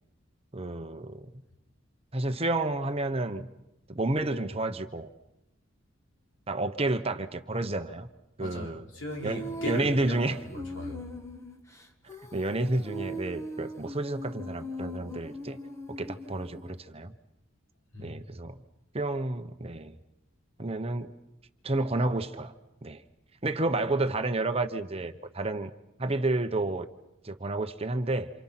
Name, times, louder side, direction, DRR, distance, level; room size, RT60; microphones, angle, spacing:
voice 1, 0.5-1.4 2.1-3.5 3.9-5.1 6.5-8.1 8.4-8.8 9.2-10.4 12.3-15.6 15.9-17.1 18.0-18.6 18.9-19.9 20.6-21.1 21.6-22.5 22.8-23.0 23.4-25.7 26.0-26.9 27.2-28.3, right 2 dB, 30° right, 1.0 m, -30 dB
voice 2, 8.4-11.1 17.9-18.2, left 1 dB, 65° left, 4.3 m, -38 dB
Female singing, 9.1-16.8, right 1 dB, 15° left, 1.6 m, -40 dB
28.5 x 27.5 x 5.9 m
head